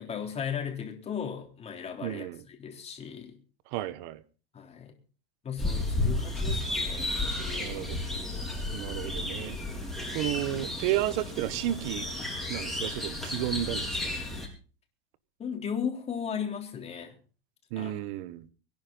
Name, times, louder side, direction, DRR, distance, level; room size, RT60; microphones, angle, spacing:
voice 1, 0.0-3.4 4.5-4.9 5.4-7.8 15.4-17.2 17.8-17.9, left 7 dB, 20° left, 3.6 m, -36 dB
voice 2, 2.0-2.4 3.7-4.2 7.6-8.0 8.7-9.6 10.1-12.1 12.5-14.1 17.7-18.5, right 14 dB, 50° right, 1.3 m, -32 dB
sound 1, 5.6-14.5, left 2 dB, ahead, 4.6 m, -33 dB
24.0 x 10.5 x 4.0 m
supercardioid pair, 130°, 30 cm